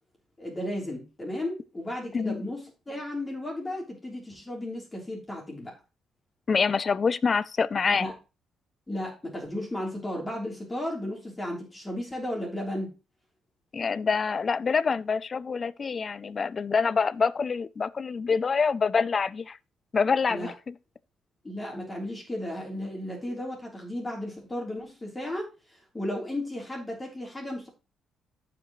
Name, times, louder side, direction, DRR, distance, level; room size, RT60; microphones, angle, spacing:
voice 1, 0.4-5.8 7.9-8.1 8.9-12.9 20.3-20.5 21.4-25.5 25.9-27.7, left 1 dB, 20° left, 3.4 m, -34 dB
voice 2, 6.5-8.1 13.7-19.6 19.9-20.8, left 5 dB, 40° left, 0.4 m, -26 dB
14.0 x 5.1 x 3.1 m
cardioid pair, 90°, 0 cm